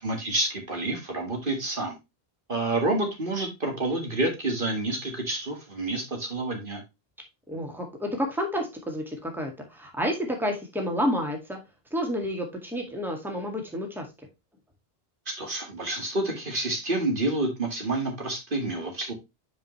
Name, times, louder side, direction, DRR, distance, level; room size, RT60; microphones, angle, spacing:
voice 1, 0.0-1.9 2.5-6.8 15.4-19.1, right 2 dB, 55° right, 2 dB, 2.0 m, -28 dB
voice 2, 7.5-11.6 11.9-14.1, equal, ahead, 2 dB, 2.0 m, -30 dB
9.0 x 5.1 x 3.1 m, 0.23 s
omnidirectional pair, 1.0 m